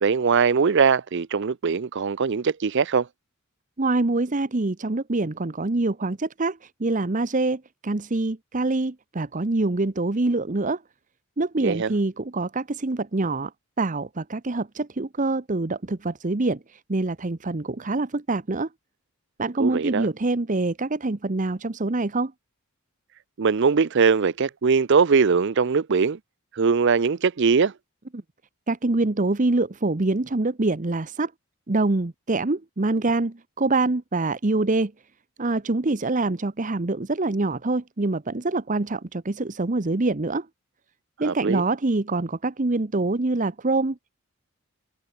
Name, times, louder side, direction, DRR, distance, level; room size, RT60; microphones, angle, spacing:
voice 1, 0.0-3.1 11.6-11.9 19.6-20.1 23.4-26.2 26.5-27.7 41.2-41.6, right 5 dB, 55° right, 0.5 m, -21 dB
voice 2, 3.8-10.8 11.4-13.5 13.8-18.7 19.4-22.3 28.7-31.3 31.7-34.9 35.4-40.5 41.2-44.2, right 2 dB, 35° right, 0.9 m, -25 dB
head